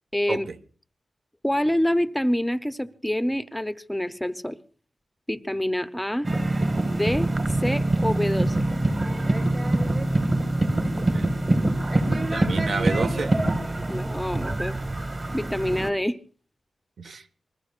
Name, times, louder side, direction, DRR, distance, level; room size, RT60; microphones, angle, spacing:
voice 1, 0.1-0.5 1.4-4.6 5.3-6.3 6.8-7.3 7.6-8.7 13.8-14.8 15.3-16.2, left 1 dB, 5° left, 0.7 m, -26 dB
sound 1, 6.2-15.9, right 1 dB, 30° right, 1.7 m, -24 dB
voice 2, 10.9-11.4 12.1-13.4 17.0-17.2, right 4 dB, 65° right, 1.3 m, -31 dB
26.0 x 21.0 x 2.4 m
wide cardioid pair, 140°, 0 cm